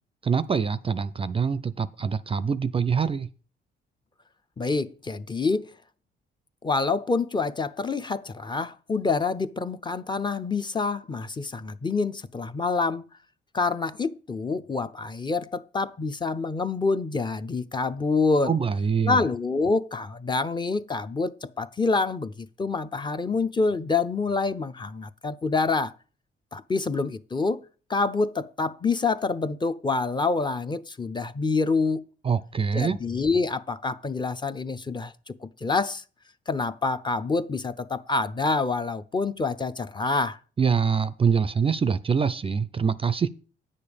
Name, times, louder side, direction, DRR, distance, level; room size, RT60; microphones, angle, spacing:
voice 1, 0.2-3.3 18.4-19.3 32.2-33.0 40.6-43.3, right 6 dB, 30° right, 0.4 m, -24 dB
voice 2, 4.6-5.7 6.6-13.0 13.5-18.5 19.0-25.9 26.5-27.6 27.9-32.0 32.7-36.0 36.5-40.4, left 4 dB, 20° left, 0.6 m, -27 dB
9.3 x 6.7 x 5.2 m
cardioid pair, 90°, 20 cm